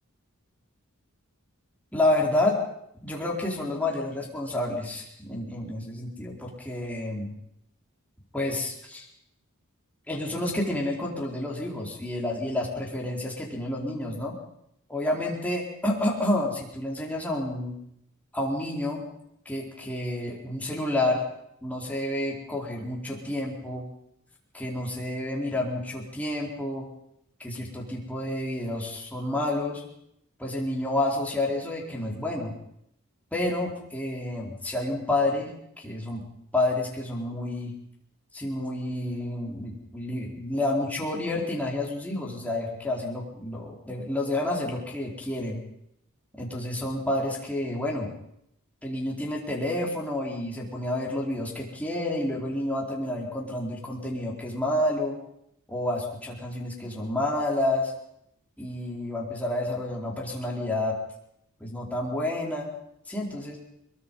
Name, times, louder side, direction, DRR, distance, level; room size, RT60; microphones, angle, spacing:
voice 1, 1.9-2.6 3.0-7.3 8.3-9.1 10.1-14.4 14.9-17.8 18.3-19.0 19.5-21.2 21.6-23.8 24.5-26.9 27.4-29.8 30.4-32.5 33.3-35.5 35.8-36.2 36.5-37.7 38.3-45.6 46.4-48.1 48.8-55.2 55.7-57.9 58.6-60.9 61.6-62.7 63.1-63.6, left 1 dB, 5° left, -3 dB, 4.1 m, -29 dB
22.5 x 22.0 x 5.5 m, 0.76 s
head